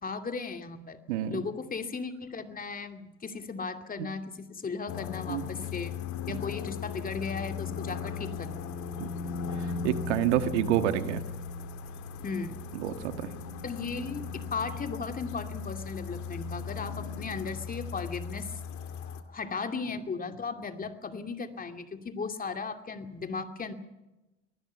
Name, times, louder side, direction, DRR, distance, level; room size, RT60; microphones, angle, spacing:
voice 1, 0.0-1.0 1.3-6.0 6.3-8.7 12.2-12.6 13.6-23.7, left 4 dB, 25° left, 7 dB, 2.5 m, -36 dB
voice 2, 1.1-1.4 4.0-4.1 5.3-5.5 6.3-6.4 9.0-9.1 9.8-11.2 12.8-13.3, right 12 dB, 75° right, 10 dB, 1.7 m, -28 dB
sound 1, 4.9-19.2, left 6 dB, 55° left, 2.4 m, -37 dB
24.5 x 19.5 x 5.7 m, 1.0 s
hypercardioid pair, 80°, 35 cm